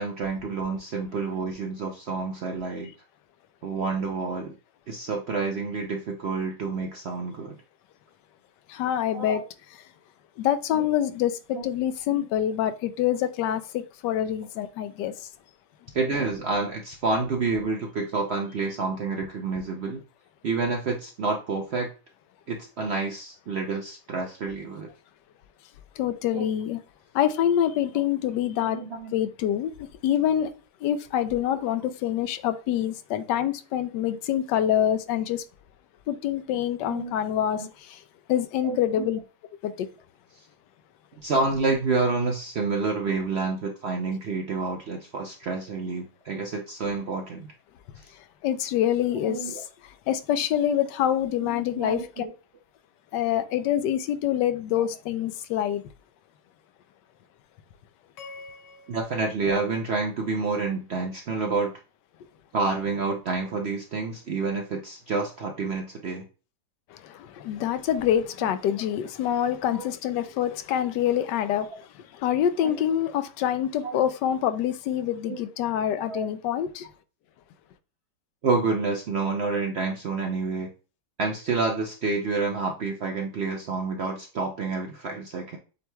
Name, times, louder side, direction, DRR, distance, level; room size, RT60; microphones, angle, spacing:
voice 1, 0.0-2.9 3.6-4.6 4.9-7.6 9.1-9.4 10.7-10.8 11.5-11.6 12.1-12.2 15.9-20.0 20.4-21.9 22.5-24.9 26.3-26.5 28.7-29.1 36.8-37.1 37.5-37.7 38.6-39.1 41.2-47.5 48.0-48.1 49.2-49.6 51.4-52.3 58.9-61.7 62.5-66.2 68.4-68.5 69.6-69.8 72.6-72.7 73.8-74.0 75.3-75.4 76.1-76.3 78.4-80.7 81.2-85.6, right 4 dB, 65° right, 0.6 m, -29 dB
voice 2, 8.7-9.4 10.4-15.1 26.0-26.8 27.1-28.8 29.1-30.5 30.8-35.4 36.1-38.0 38.3-39.2 39.6-39.9 48.4-49.6 50.1-52.2 53.1-55.8 66.9-71.9 72.1-76.9, left 10 dB, 90° left, 1.2 m, -26 dB
sound 1, 58.2-60.5, left 3 dB, 70° left, 1.3 m, -48 dB
7.7 x 3.0 x 2.2 m
omnidirectional pair, 1.8 m